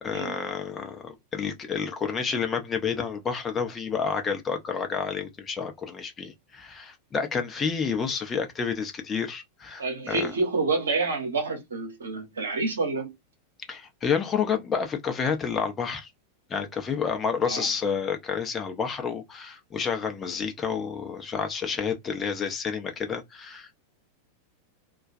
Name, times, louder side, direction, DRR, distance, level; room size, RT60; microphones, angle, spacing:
voice 1, 0.0-10.3 13.7-16.1 16.5-23.7, left 6 dB, 20° left, 0.6 m, -29 dB
voice 2, 9.8-13.1 17.5-17.7, right 3 dB, 70° right, 0.8 m, -28 dB
2.3 x 2.2 x 2.5 m
figure-of-eight pair, 90°, 0 cm